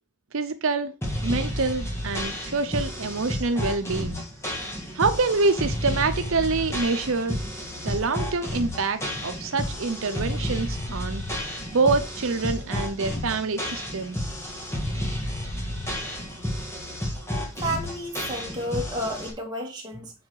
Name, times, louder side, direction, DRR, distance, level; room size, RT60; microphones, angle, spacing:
voice 1, 0.3-0.9 1.2-4.2 5.0-7.4 7.8-11.2 11.7-14.2, right 3 dB, 80° right, 0.7 m, -26 dB
sound 1, 1.0-19.3, left 1 dB, 15° left, 1.7 m, -31 dB
voice 2, 17.6-20.1, equal, 20° right, 1.9 m, -31 dB
7.2 x 4.8 x 4.7 m
head